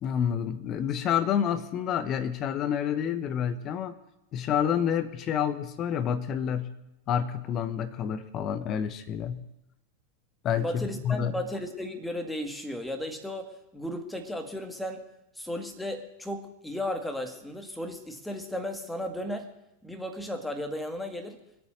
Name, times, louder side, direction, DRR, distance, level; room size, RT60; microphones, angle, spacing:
voice 1, 0.0-3.9 4.3-6.7 7.1-9.4 10.4-11.3, left 8 dB, 35° left, 11 dB, 1.1 m, -28 dB
voice 2, 10.6-15.1 15.4-19.6 19.8-21.4, left 1 dB, 5° left, 5 dB, 2.1 m, -35 dB
23.5 x 8.6 x 6.6 m, 0.88 s
figure-of-eight pair, 90°, 0 cm